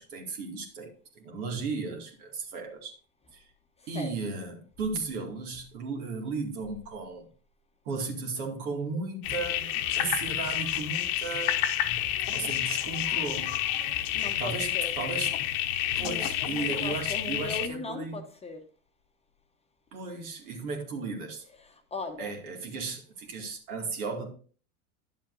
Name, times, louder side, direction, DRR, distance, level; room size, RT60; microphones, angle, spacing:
voice 1, 0.0-2.9 3.3-3.4 3.9-7.3 7.9-11.6 12.3-13.6 14.2-15.4 16.0-18.2 19.9-21.4 22.2-24.3, right 4 dB, 75° right, 2.4 m, -35 dB
sound 1, 9.2-17.7, left 12 dB, 50° left, 1.0 m, -29 dB
voice 2, 14.1-14.9 16.0-18.6 21.6-22.3, left 3 dB, 15° left, 0.9 m, -38 dB
10.5 x 7.5 x 2.6 m
hypercardioid pair, 105°, 44 cm